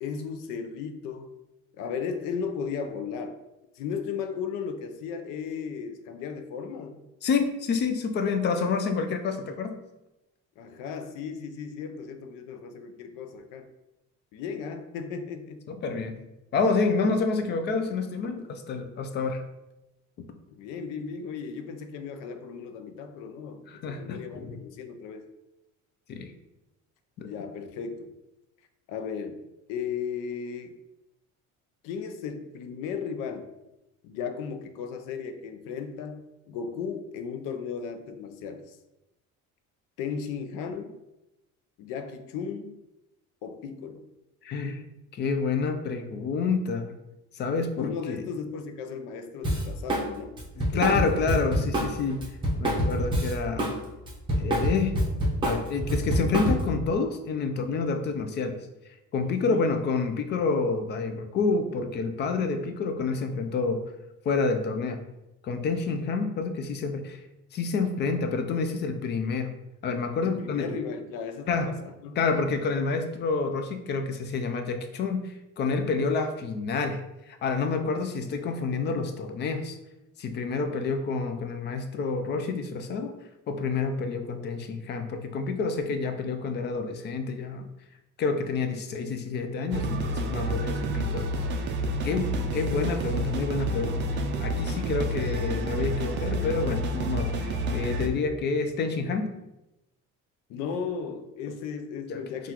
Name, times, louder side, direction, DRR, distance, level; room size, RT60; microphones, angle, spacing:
voice 1, 0.0-1.3 1.8-3.4 3.8-7.1 8.5-8.7 10.6-13.7 14.3-15.6 20.5-25.3 27.2-28.1 28.9-29.4 29.7-30.8 31.8-33.5 34.0-38.8 40.0-41.0 41.8-42.8 43.4-44.1 47.8-50.4 50.7-51.2 52.7-53.1 59.2-59.6 70.2-72.2 92.1-92.6 100.5-102.5, left 6 dB, 85° left, 8 dB, 0.6 m, -36 dB
voice 2, 7.2-9.8 15.7-16.2 16.5-19.4 23.7-24.6 26.1-26.3 27.2-27.3 44.4-47.0 47.4-48.2 50.6-52.2 52.6-53.7 54.4-55.0 55.4-58.7 59.1-63.8 64.2-65.0 65.4-67.2 67.5-69.5 69.8-70.8 71.5-71.7 72.2-77.0 77.3-79.8 80.2-83.1 83.5-87.7 88.2-91.7 92.0-99.3 102.1-102.5, left 4 dB, 35° left, 7 dB, 0.4 m, -28 dB
Drum kit, 49.4-50.1 50.4-53.8 54.0-56.8, equal, 15° right, 0.8 m, -26 dB
sound 1, 89.7-98.1, right 1 dB, 35° right, 0.4 m, -29 dB
5.6 x 2.4 x 2.9 m, 0.95 s
cardioid pair, 165°, 31 cm